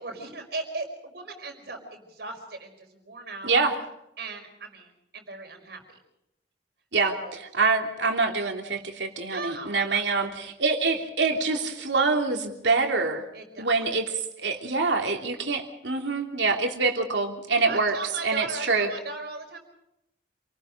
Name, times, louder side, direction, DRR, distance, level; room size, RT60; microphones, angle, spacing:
voice 1, 0.0-3.5 4.2-5.8 7.1-7.4 9.3-10.2 13.3-13.7 17.6-19.6, right 3 dB, 60° right, 3 dB, 5.1 m, -38 dB
voice 2, 3.4-3.8 6.9-7.1 7.5-13.2 13.6-18.0 18.2-18.9, right 4 dB, 80° right, 3 dB, 3.0 m, -25 dB
28.0 x 19.5 x 5.1 m, 0.84 s
head